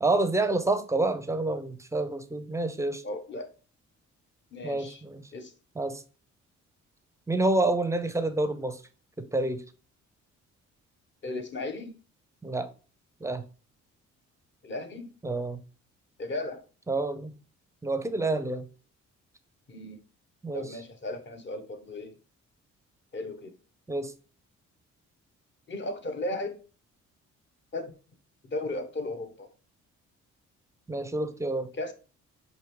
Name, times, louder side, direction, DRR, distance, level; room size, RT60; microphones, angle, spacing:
voice 1, 0.0-3.0 4.6-5.2 5.8-6.0 7.3-8.8 9.2-9.6 12.4-12.7 13.2-13.4 15.2-15.6 16.9-17.3 17.8-18.7 20.4-20.7 23.9-24.1 30.9-31.7, right 2 dB, 10° right, 0.5 m, -28 dB
voice 2, 3.0-3.5 4.5-5.0 5.3-5.5 11.2-11.9 14.6-15.1 16.2-16.6 19.7-20.0 20.5-22.1 23.1-23.5 25.7-26.6 27.7-28.0 28.4-29.5 31.7-31.9, left 2 dB, 40° left, 0.8 m, -35 dB
5.0 x 2.7 x 3.0 m
cardioid pair, 80°, 30 cm